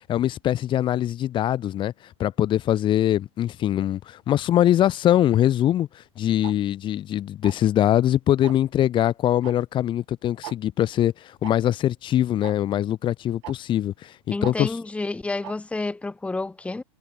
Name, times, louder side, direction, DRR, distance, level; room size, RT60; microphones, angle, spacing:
voice 1, 0.1-1.9 2.2-4.0 4.3-5.9 6.2-11.1 11.4-13.9 14.3-14.7, left 12 dB, 30° left, 1.5 m, -22 dB
Tick-tock, 6.4-6.5 7.4-7.7 8.4-8.7 9.4-9.5 9.8-9.9 10.4-10.6 11.4-11.5 12.4-12.5 13.4-13.5 14.4-14.6 15.4-15.5, right 21 dB, 60° right, 1.3 m, -37 dB
voice 2, 14.3-16.8, left 3 dB, 5° left, 3.2 m, -29 dB
supercardioid pair, 140°, 17 cm